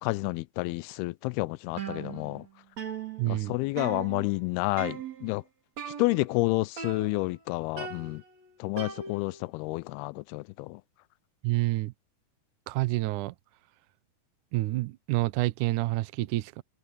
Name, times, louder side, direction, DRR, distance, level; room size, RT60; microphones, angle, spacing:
voice 1, 0.0-2.5 3.3-5.4 5.9-8.2 8.6-10.8, left 22 dB, 90° left, 2.5 m, -30 dB
sound 1, 1.8-2.5 2.8-4.5 4.8-5.3 5.8-6.4 6.8-7.4 7.8-9.5, right 7 dB, 45° right, 3.7 m, -39 dB
voice 2, 3.2-3.6 11.4-11.9 12.7-13.4 14.5-16.6, right 18 dB, 75° right, 1.8 m, -28 dB
open air
omnidirectional pair, 4.4 m